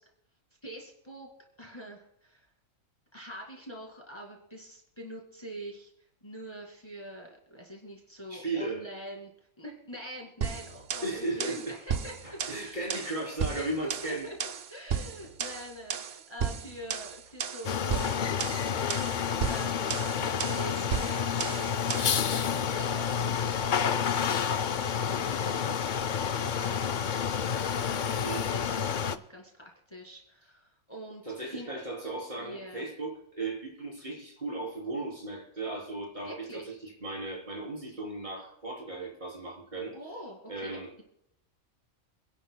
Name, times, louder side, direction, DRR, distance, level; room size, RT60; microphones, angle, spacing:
voice 1, 0.6-1.3 1.6-2.5 3.1-5.9 6.2-9.3 9.6-12.9 13.5-14.4 14.7-18.1 19.1-23.5 23.9-27.1 27.5-31.2 31.5-31.7 32.4-32.8 36.2-36.7 39.9-40.8, right 1 dB, 20° left, 0 dB, 2.4 m, -45 dB
voice 2, 8.3-8.9 11.0-11.7 12.2-14.3 28.2-28.5 31.3-39.9 40.5-41.0, right 2 dB, 35° right, -3 dB, 3.8 m, -36 dB
sound 1, 10.4-22.2, right 7 dB, 55° right, 0.8 m, -35 dB
sound 2, 17.6-29.2, left 7 dB, 55° left, 0.5 m, -29 dB
27.0 x 11.0 x 2.2 m, 0.77 s
omnidirectional pair, 1.4 m